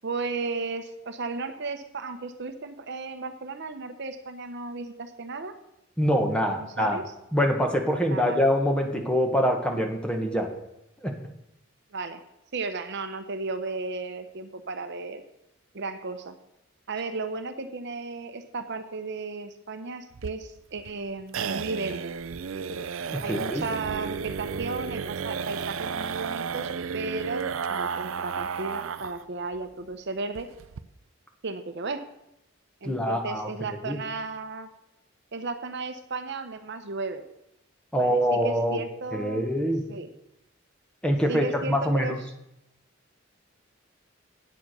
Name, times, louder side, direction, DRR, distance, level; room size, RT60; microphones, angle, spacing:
voice 1, 0.0-5.5 6.3-7.0 8.1-8.4 11.9-12.2 12.5-15.2 15.7-16.4 16.9-22.1 23.2-30.5 31.4-32.0 32.8-34.7 35.3-37.2 37.9-39.6 39.9-40.1 41.3-42.2, right 3 dB, 60° right, 9 dB, 0.9 m, -34 dB
voice 2, 6.0-7.0 7.3-10.5 11.0-11.1 23.1-23.6 32.8-33.5 33.8-34.0 37.9-38.8 39.1-39.8 41.0-42.2, equal, 5° left, 3 dB, 1.5 m, -25 dB
sound 1, 20.1-29.2 29.5-29.6 29.9-30.0 30.3-30.8, right 6 dB, 80° right, 0.5 m, -33 dB
9.1 x 7.2 x 6.8 m, 0.82 s
head